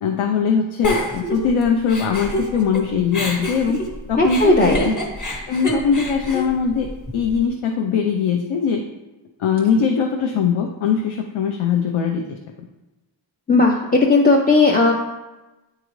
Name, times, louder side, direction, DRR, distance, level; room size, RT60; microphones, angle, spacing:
voice 1, 0.0-3.8 4.1-4.8 5.5-6.9 7.1-8.8 9.4-12.4, left 6 dB, 85° left, 2 dB, 0.7 m, -21 dB
Giggle, 0.8-2.8 3.1-7.4, equal, 40° left, 1.0 m, -27 dB
voice 2, 4.2-4.9 13.5-14.9, left 3 dB, 20° left, 0 dB, 0.4 m, -15 dB
9.2 x 3.8 x 3.1 m, 1.1 s
wide cardioid pair, 150°, 48 cm